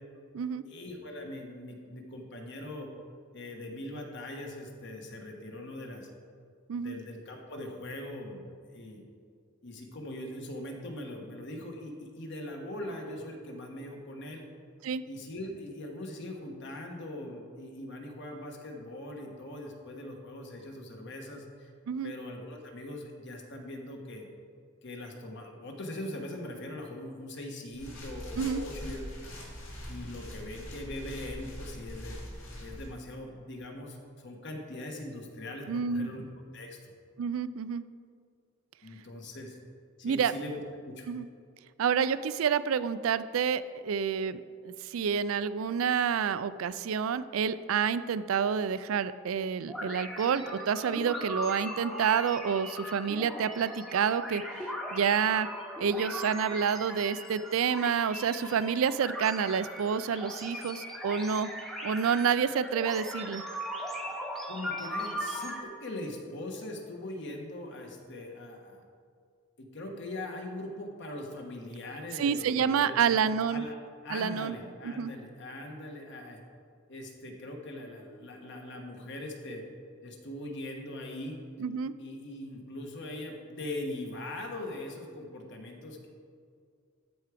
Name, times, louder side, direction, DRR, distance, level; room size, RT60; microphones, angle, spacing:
voice 1, 0.6-2.9 3.3-6.1 6.8-9.0 9.6-14.5 15.1-21.7 22.0-24.3 24.8-29.4 29.9-32.2 32.6-36.2 36.5-36.8 38.8-39.6 40.0-41.1 64.5-68.8 69.6-73.1 73.5-73.8 74.0-76.4 76.9-79.6 80.0-81.4 82.0-86.1, left 1 dB, 60° left, 2 dB, 1.3 m, -41 dB
sound 1, 27.7-32.9, equal, 80° left, 2.4 m, -42 dB
voice 2, 35.7-36.1 37.2-37.8 40.0-40.3 41.1-41.2 41.8-55.5 55.8-61.5 61.8-63.4 72.2-73.7 74.1-74.6 74.8-75.1 81.6-81.9, right 7 dB, 85° right, 15 dB, 0.4 m, -29 dB
sound 2, 49.7-65.6, equal, ahead, 0.8 m, -39 dB
13.0 x 4.7 x 5.0 m, 2.2 s
head